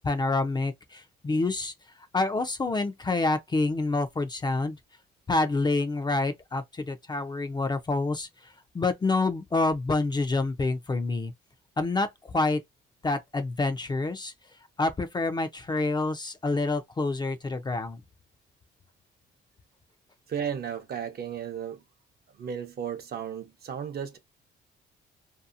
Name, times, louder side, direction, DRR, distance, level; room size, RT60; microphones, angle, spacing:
voice 1, 0.0-4.8 5.3-11.3 11.8-12.6 13.0-14.3 14.8-18.0, left 3 dB, 20° left, 0.5 m, -27 dB
voice 2, 20.3-21.8 22.4-24.2, right 8 dB, 55° right, 0.7 m, -34 dB
2.7 x 2.2 x 2.5 m
cardioid pair, 90°, 20 cm